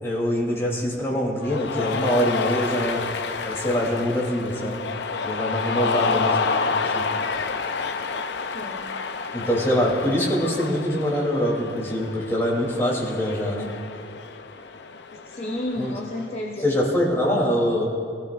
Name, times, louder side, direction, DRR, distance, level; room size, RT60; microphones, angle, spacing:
voice 1, 0.0-3.1 3.4-4.8 5.2-7.1 9.3-13.8 15.8-15.9 16.6-17.9, equal, 15° left, -4 dB, 3.0 m, -24 dB
Cheering, 1.4-16.3, left 4 dB, 65° left, 0.6 m, -29 dB
voice 2, 5.7-6.1 8.5-8.8 15.3-16.8, left 1 dB, 35° left, -1 dB, 0.9 m, -32 dB
21.5 x 15.5 x 2.5 m, 2.3 s
head